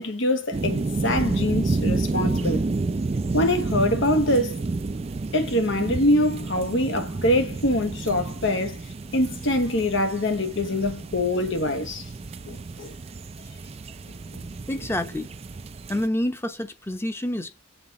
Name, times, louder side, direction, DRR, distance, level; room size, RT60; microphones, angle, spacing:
voice 1, 0.0-2.6 3.3-4.6 5.3-8.8 9.1-12.0 12.5-12.9 14.3-14.4, left 1 dB, 70° left, 1.3 m, -24 dB
sound 1, 0.5-16.1, right 3 dB, 30° right, 0.4 m, -30 dB
voice 2, 14.7-15.3 15.9-17.6, left 1 dB, 10° left, 0.9 m, -28 dB
7.3 x 4.1 x 3.8 m
head